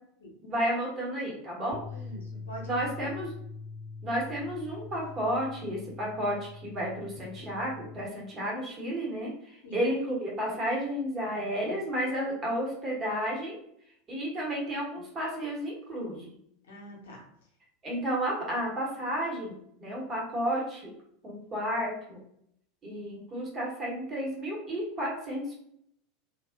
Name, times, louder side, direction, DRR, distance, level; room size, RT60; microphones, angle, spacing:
voice 1, 0.4-1.8 2.6-3.3 4.0-13.6 14.1-16.3 17.8-20.9 21.2-22.2 22.8-25.5, equal, 30° right, -3 dB, 1.0 m, -32 dB
sound 1, 1.7-8.0, left 4 dB, 45° left, 0.4 m, -43 dB
voice 2, 1.9-3.1 9.6-9.8 16.7-17.2, right 1 dB, 70° left, -1 dB, 0.7 m, -45 dB
2.4 x 2.2 x 2.4 m, 0.70 s
figure-of-eight pair, 80°, 0 cm